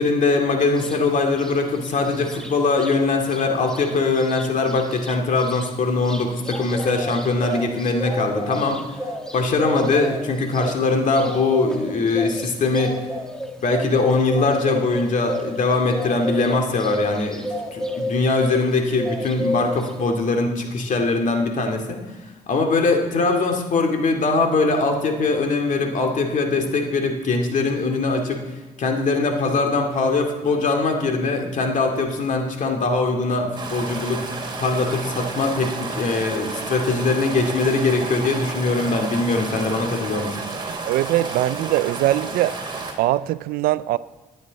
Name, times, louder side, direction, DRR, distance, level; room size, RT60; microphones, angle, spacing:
voice 1, 0.0-8.8 9.3-13.0 13.6-22.0 22.5-28.4 28.8-34.2 34.6-40.4, left 3 dB, 60° left, 2.3 m, -21 dB
sound 1, 0.8-1.0 1.3-2.9 3.3-3.4 3.7-18.7 19.0-20.1, left 1 dB, 5° left, 1.7 m, -31 dB
sound 2, 33.6-42.9, right 3 dB, 30° right, 3.1 m, -31 dB
voice 2, 40.8-42.6 43.0-44.0, right 15 dB, 90° right, 0.4 m, -21 dB
16.0 x 10.5 x 4.0 m
cardioid pair, 80°, 15 cm